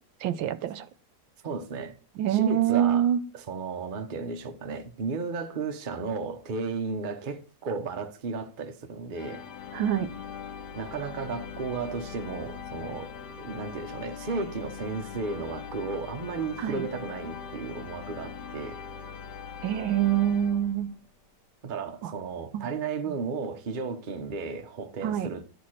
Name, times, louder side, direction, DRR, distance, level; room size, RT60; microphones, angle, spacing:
voice 1, 0.2-0.9 2.2-3.2 9.7-10.1 16.6-16.8 19.6-20.9 22.5-22.6 25.0-25.3, right 10 dB, 75° right, 1.3 m, -25 dB
voice 2, 1.4-1.9 2.3-9.4 10.7-13.1 13.4-18.8 21.6-25.4, right 4 dB, 55° right, 0.5 m, -34 dB
sound 1, 9.1-21.1, left 7 dB, 60° left, 1.3 m, -41 dB
11.5 x 4.4 x 6.4 m
omnidirectional pair, 2.3 m